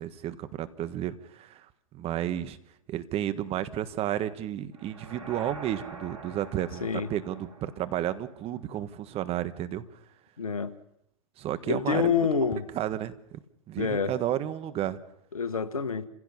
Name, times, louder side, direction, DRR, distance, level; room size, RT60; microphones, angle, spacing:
voice 1, 0.0-1.7 1.9-2.6 2.9-10.0 11.4-12.3 12.7-13.4 13.7-15.0, right 12 dB, 35° right, 1.5 m, -32 dB
sound 1, 4.7-8.8, right 4 dB, 80° right, 4.9 m, -45 dB
voice 2, 10.4-10.7 11.7-12.6 13.8-14.1 15.3-16.0, left 6 dB, 85° left, 1.4 m, -27 dB
29.5 x 16.0 x 5.7 m
hypercardioid pair, 100°, 18 cm